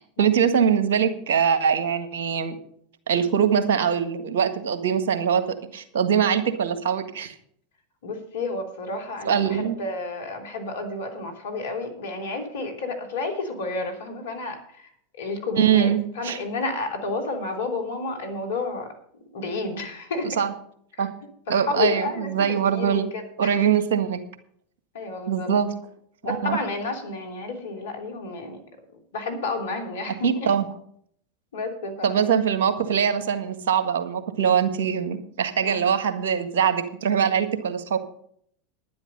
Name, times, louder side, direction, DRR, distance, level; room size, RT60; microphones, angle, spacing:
voice 1, 0.0-2.6 3.1-5.4 5.7-7.3 9.2-9.8 15.6-16.0 16.2-16.4 20.2-20.5 21.0-21.1 21.5-23.1 23.4-24.2 25.3-25.7 26.2-26.6 30.2-30.7 32.0-38.0, right 7 dB, 65° right, 9 dB, 1.6 m, -22 dB
voice 2, 8.0-18.9 19.3-20.4 20.9-21.1 21.7-22.3 22.7-23.5 24.9-25.5 26.2-28.6 29.1-30.5 31.5-32.3 35.6-35.8, left 3 dB, 70° left, 4 dB, 3.0 m, -31 dB
10.5 x 10.5 x 5.5 m, 0.64 s
hypercardioid pair, 90°, 0 cm